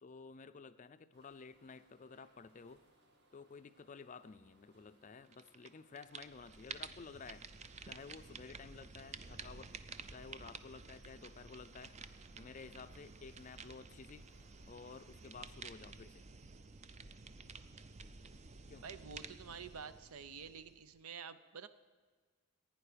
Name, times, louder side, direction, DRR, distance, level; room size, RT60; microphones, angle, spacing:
voice 1, 0.0-2.8 3.3-7.5 7.8-9.7 10.1-11.9 12.3-14.3 14.7-16.2 18.7-18.9, left 4 dB, 35° left, 12 dB, 0.4 m, -53 dB
sound 1, 1.1-15.3, right 1 dB, 50° right, 1.6 m, -71 dB
sound 2, 5.3-5.7 6.0-21.0, right 4 dB, 30° right, 0.5 m, -52 dB
voice 2, 18.8-21.7, right 6 dB, 85° right, 13 dB, 0.6 m, -49 dB
15.5 x 9.4 x 5.1 m, 1.5 s
head